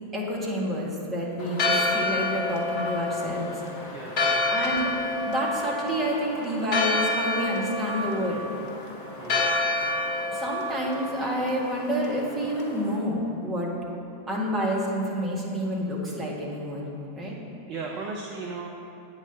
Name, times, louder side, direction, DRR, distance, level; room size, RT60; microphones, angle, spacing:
voice 1, 0.1-3.5 4.5-4.9 5.2-8.5 10.3-13.7 14.3-16.9 17.2-17.4, equal, 20° right, -4 dB, 1.8 m, -29 dB
Church bell, 1.4-13.0, left 2 dB, 40° left, 1.1 m, -29 dB
voice 2, 3.9-4.4 9.2-9.5 17.7-18.7, right 4 dB, 35° right, -1 dB, 0.6 m, -36 dB
8.5 x 4.0 x 7.0 m, 2.9 s
figure-of-eight pair, 90°, 0 cm